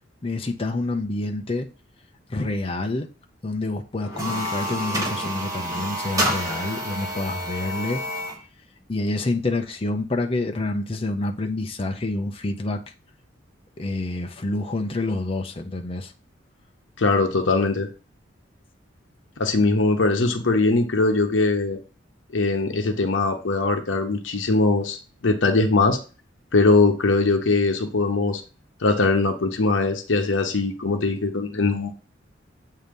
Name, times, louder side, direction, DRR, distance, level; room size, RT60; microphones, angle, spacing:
voice 1, 0.2-1.7 2.3-3.1 3.4-8.0 8.9-12.8 13.8-16.1, left 2 dB, 30° left, 0.6 m, -27 dB
sound 1, 4.0-8.4, equal, 20° right, 1.3 m, -28 dB
voice 2, 17.0-17.9 19.4-21.8 22.3-26.0 26.5-28.4 28.8-31.9, left 3 dB, 80° left, 0.9 m, -21 dB
7.6 x 2.8 x 5.2 m
head